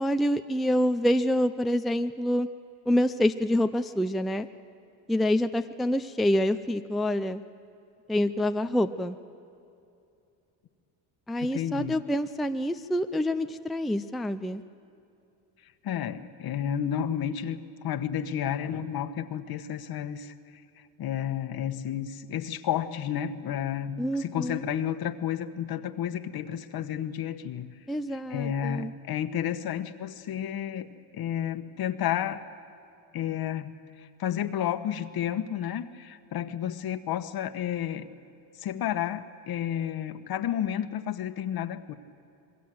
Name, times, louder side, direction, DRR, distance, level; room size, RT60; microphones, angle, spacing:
voice 1, 0.0-2.5 2.9-4.5 5.1-7.4 8.1-9.2 11.3-14.6 24.0-24.6 27.9-28.9, left 1 dB, ahead, 8 dB, 0.5 m, -26 dB
voice 2, 11.4-12.0 15.8-20.3 20.8-27.7 28.1-32.5 33.1-38.1 38.6-41.9, left 10 dB, 55° left, 11 dB, 1.3 m, -31 dB
26.5 x 22.0 x 7.8 m, 2.7 s
cardioid pair, 105°, 44 cm